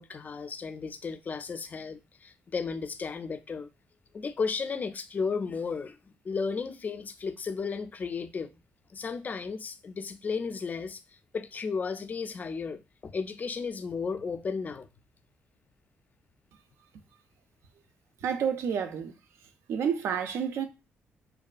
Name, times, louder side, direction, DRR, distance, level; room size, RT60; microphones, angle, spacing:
voice 1, 0.0-3.7 4.1-6.0 6.2-8.5 8.9-11.0 11.3-14.9, left 5 dB, 35° left, 0.3 m, -34 dB
voice 2, 18.2-19.1 19.7-20.7, right 7 dB, 70° right, 0.4 m, -29 dB
2.5 x 2.2 x 2.3 m
cardioid pair, 85°, 5 cm